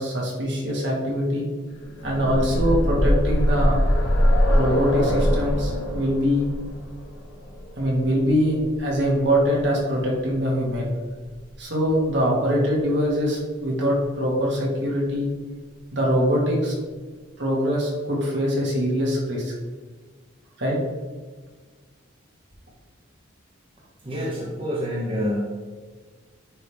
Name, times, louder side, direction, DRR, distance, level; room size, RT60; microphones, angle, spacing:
voice 1, 0.0-1.5 2.0-3.8 4.5-6.5 7.8-10.9 11.6-15.3 15.9-16.8 17.4-19.5 20.6-20.8, equal, 60° right, -4 dB, 1.9 m, -23 dB
sound 1, 1.8-9.6 10.7-10.8 11.2-11.3, equal, 90° left, 1.0 m, -23 dB
voice 2, 24.0-25.5, equal, 25° right, -5 dB, 0.8 m, -27 dB
9.7 x 3.4 x 3.5 m, 1.5 s
head